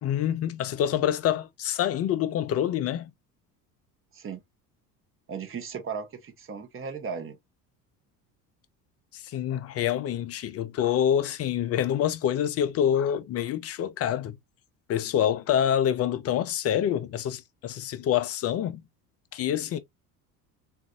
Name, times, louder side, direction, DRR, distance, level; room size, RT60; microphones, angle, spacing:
voice 1, 0.0-3.1 9.1-14.4 14.9-18.8 19.3-19.8, left 10 dB, 30° left, 0.5 m, -26 dB
voice 2, 5.3-7.4, right 6 dB, 25° right, 0.9 m, -36 dB
4.0 x 2.4 x 2.4 m
figure-of-eight pair, 60°, 49 cm